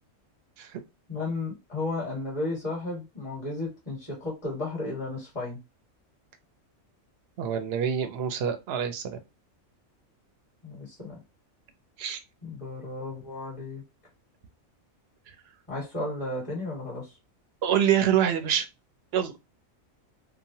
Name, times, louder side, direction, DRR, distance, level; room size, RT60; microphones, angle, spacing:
voice 1, 1.1-5.6 10.6-11.2 12.4-13.8 15.7-17.1, left 2 dB, 20° left, -5 dB, 1.3 m, -33 dB
voice 2, 7.4-9.2 12.0-12.2 17.6-18.7 19.1-19.3, right 9 dB, 65° right, 8 dB, 0.7 m, -25 dB
3.0 x 2.2 x 2.7 m, 0.23 s
omnidirectional pair, 1.4 m